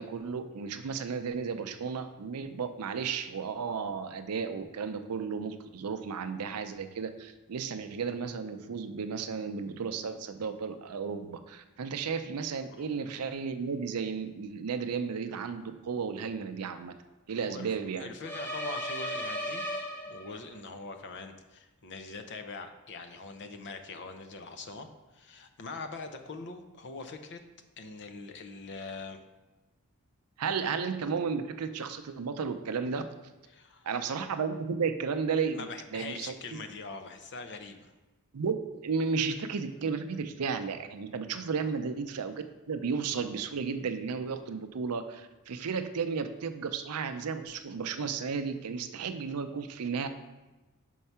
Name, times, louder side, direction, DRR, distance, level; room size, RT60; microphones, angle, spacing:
voice 1, 0.0-16.9 17.3-18.1 30.4-33.0 33.8-36.3 38.3-38.6 38.8-50.1, right 5 dB, 85° right, 9 dB, 0.5 m, -33 dB
voice 2, 17.4-19.7 20.1-27.4 27.8-29.2 33.5-33.9 35.6-37.9 41.6-41.7, left 3 dB, 50° left, 7 dB, 0.6 m, -43 dB
sound 1, 18.2-20.6, equal, 10° left, 0.7 m, -36 dB
5.5 x 4.6 x 5.6 m, 1.1 s
head